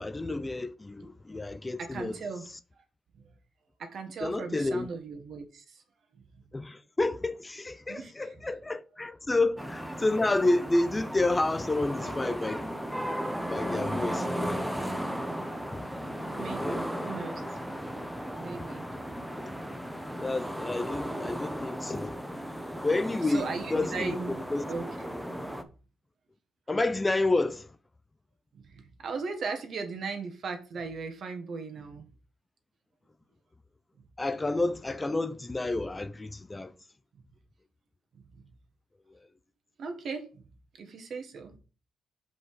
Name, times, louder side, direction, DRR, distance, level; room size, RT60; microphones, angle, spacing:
voice 1, 0.0-2.2 4.2-4.9 6.5-12.7 13.5-14.6 16.6-16.8 19.4-19.5 20.2-22.2 22.8-24.2 24.5-24.7 26.7-27.7 34.2-36.7, left 2 dB, 20° left, 0.5 m, -29 dB
voice 2, 1.8-2.4 3.1-3.2 3.8-5.8 6.1-6.2 7.9-8.3 16.0-16.1 16.4-17.4 18.4-19.2 23.3-24.4 24.7-25.2 25.5-25.7 28.5-32.1 38.1-38.4 39.8-40.4 40.8-41.6, right 4 dB, 60° right, 1.6 m, -38 dB
sound 1, 9.6-25.6, equal, ahead, 0.9 m, -35 dB
5.7 x 5.2 x 4.9 m
cardioid pair, 90°, 0 cm